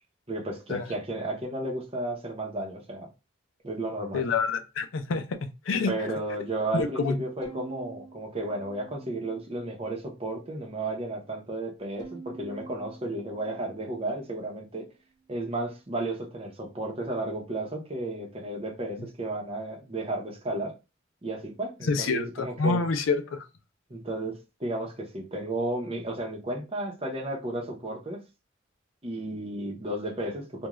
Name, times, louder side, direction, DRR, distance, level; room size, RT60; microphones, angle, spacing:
voice 1, 0.3-3.1 3.6-4.2 5.9-14.9 15.3-20.7 21.2-22.8 23.9-28.2 29.0-30.7, right 2 dB, 30° right, 0.7 m, -33 dB
voice 2, 4.1-5.9 6.7-7.2 21.8-23.4, left 4 dB, 80° left, 0.5 m, -27 dB
Bowed string instrument, 7.4-9.8 10.2-11.0 12.0-14.5, right 4 dB, 20° left, 0.8 m, -48 dB
2.4 x 2.2 x 3.0 m
head